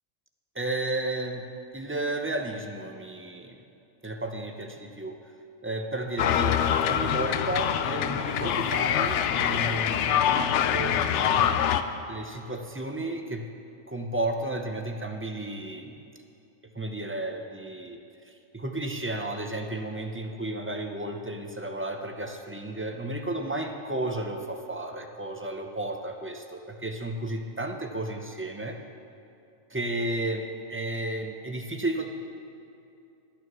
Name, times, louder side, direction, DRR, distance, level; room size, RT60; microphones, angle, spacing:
voice 1, 0.5-1.4 1.7-3.6 4.0-5.2 5.6-6.6 6.8-11.7 12.1-13.5 13.9-15.9 16.7-18.0 18.2-28.8 29.7-32.1, right 1 dB, 20° right, 3 dB, 0.4 m, -33 dB
sound 1, 6.2-11.8, left 9 dB, 70° left, 0.8 m, -25 dB
12.0 x 9.5 x 6.2 m, 2.7 s
omnidirectional pair, 1.4 m